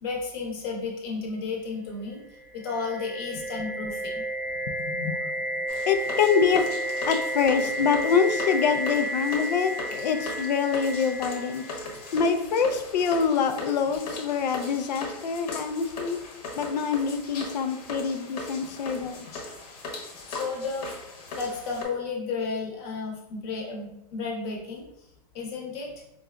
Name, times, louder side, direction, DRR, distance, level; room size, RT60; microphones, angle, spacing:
voice 1, 0.0-2.2 2.5-4.2 20.3-21.0 21.3-24.8 25.3-25.9, left 4 dB, 35° left, 0 dB, 0.8 m, -33 dB
sound 1, 2.3-12.2, right 1 dB, 20° right, 0.7 m, -32 dB
voice 2, 4.7-5.4 5.9-6.6 7.1-11.6 12.1-16.2 16.6-19.3, left 6 dB, 85° left, 7 dB, 0.5 m, -25 dB
sound 2, 5.7-21.8, left 2 dB, 65° left, 1.0 m, -39 dB
4.7 x 2.4 x 2.2 m, 0.83 s
supercardioid pair, 160°, 21 cm